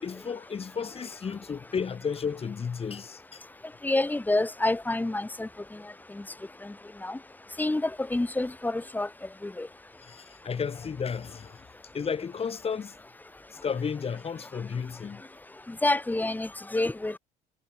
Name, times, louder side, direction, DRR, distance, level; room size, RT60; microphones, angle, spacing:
voice 1, 0.0-3.4 10.0-11.6 11.9-12.9 13.5-15.2, left 6 dB, 35° left, 7.5 m, -33 dB
voice 2, 3.8-5.5 6.2-6.3 6.6-6.7 7.0-7.2 7.6-9.1 9.4-9.7 15.7-17.2, left 2 dB, 10° left, 3.6 m, -28 dB
cardioid pair, 110°, 17 cm